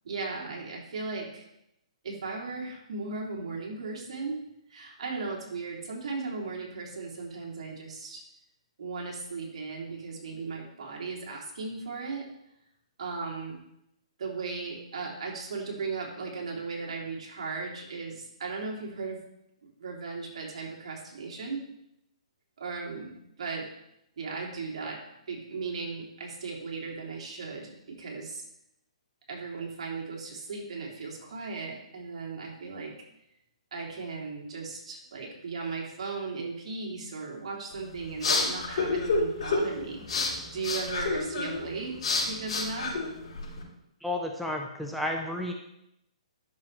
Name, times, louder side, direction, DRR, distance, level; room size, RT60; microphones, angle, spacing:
voice 1, 0.0-1.5 2.0-4.4 4.7-8.2 8.8-12.2 13.0-13.6 14.2-19.2 19.8-21.6 22.6-23.6 24.2-25.0 25.3-28.4 29.3-32.9 33.7-40.1 40.5-41.9 42.2-42.9, right 4 dB, 65° right, -2 dB, 3.1 m, -36 dB
sound 1, 37.7-43.6, left 3 dB, 60° left, 3.9 m, -30 dB
voice 2, 44.0-45.5, left 1 dB, ahead, 0 dB, 0.8 m, -32 dB
12.5 x 6.7 x 3.3 m, 0.82 s
hypercardioid pair, 140°, 4 cm